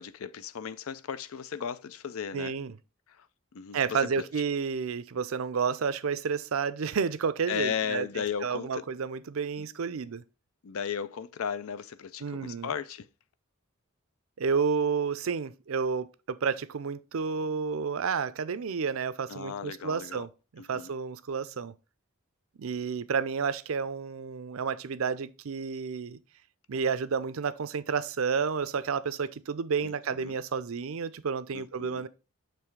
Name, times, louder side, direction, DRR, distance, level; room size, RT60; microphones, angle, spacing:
voice 1, 0.0-2.5 3.1-3.3 3.5-4.3 7.5-8.8 9.6-9.7 10.6-13.1 19.3-20.3 20.6-20.9 29.8-30.3 31.5-32.1, left 7 dB, 80° left, 0.5 m, -35 dB
voice 2, 2.3-2.7 3.7-8.1 8.4-10.2 12.2-12.7 14.4-20.3 20.5-21.7 22.6-26.2 26.7-32.1, right 6 dB, 75° right, 0.5 m, -30 dB
6.9 x 3.2 x 4.6 m
head